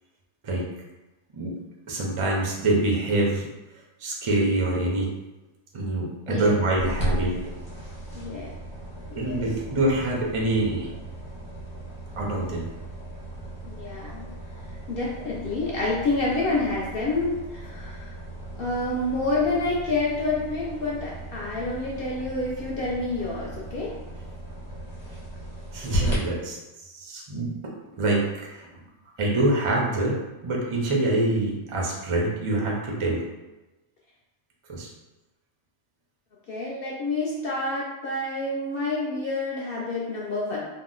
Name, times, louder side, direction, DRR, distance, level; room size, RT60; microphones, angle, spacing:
voice 1, 1.9-3.5 4.0-5.1 5.7-7.3 9.1-10.9 12.2-12.7 25.7-26.6 26.9-27.5 27.9-28.7 29.2-30.2 30.4-33.2 34.7-34.9, right 2 dB, 55° right, -2 dB, 0.3 m, -25 dB
voice 2, 6.3-6.6 8.1-8.5 9.2-9.4 13.7-14.3 14.9-18.2 18.5-23.9 36.5-40.7, left 2 dB, 65° left, -5 dB, 0.6 m, -28 dB
sound 1, 6.8-26.1, right 1 dB, 40° left, 1.1 m, -36 dB
2.8 x 2.0 x 3.7 m, 1.1 s
omnidirectional pair, 1.4 m